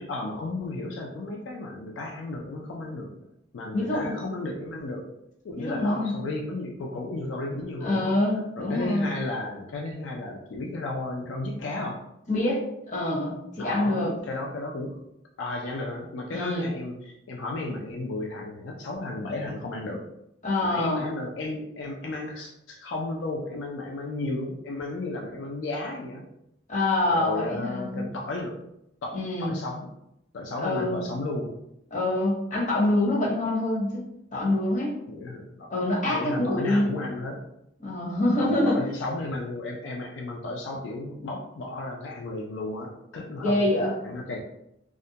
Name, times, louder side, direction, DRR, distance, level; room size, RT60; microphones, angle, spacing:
voice 1, 0.0-3.2 3.5-5.1 5.4-8.2 8.6-12.0 13.6-15.0 15.4-20.1 20.6-26.3 27.0-28.6 29.0-29.9 30.3-31.5 35.1-35.7 36.0-37.4 38.4-43.7 44.0-44.4, left 2 dB, 85° left, 0 dB, 0.4 m, -34 dB
voice 2, 3.7-4.1 5.6-6.2 7.8-9.1 12.3-14.1 16.3-16.7 20.4-21.0 26.7-28.1 29.1-29.5 30.6-31.0 31.9-34.0 34.3-34.9 35.7-36.9 37.8-38.8 43.4-43.9, left 1 dB, 40° left, -4 dB, 0.7 m, -25 dB
2.3 x 2.1 x 2.7 m, 0.80 s
head